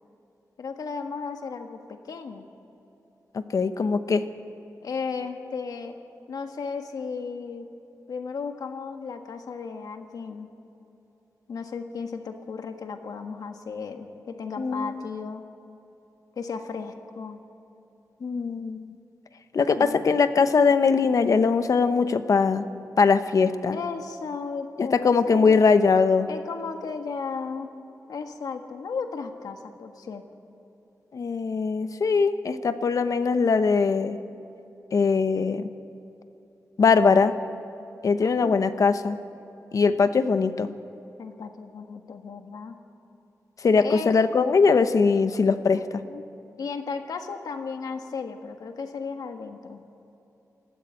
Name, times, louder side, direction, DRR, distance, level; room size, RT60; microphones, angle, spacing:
voice 1, 0.6-2.4 4.8-6.0 6.3-7.7 8.1-10.5 11.5-15.4 16.3-17.4 19.7-20.0 23.3-25.6 26.3-27.7 28.1-30.2 38.2-38.7 41.2-42.8 43.8-44.3 45.7-45.8 46.1-46.2 46.6-49.8, left 5 dB, 90° left, 6 dB, 1.6 m, -35 dB
voice 2, 3.3-4.2 14.6-15.0 18.2-19.0 19.5-22.6 23.0-23.8 24.8-26.3 31.1-34.2 34.9-35.7 36.8-37.3 38.0-39.2 39.7-40.7 43.6-46.0, left 5 dB, 65° left, 10 dB, 1.0 m, -21 dB
21.0 x 14.0 x 9.0 m, 2.9 s
wide cardioid pair, 95°, 6 cm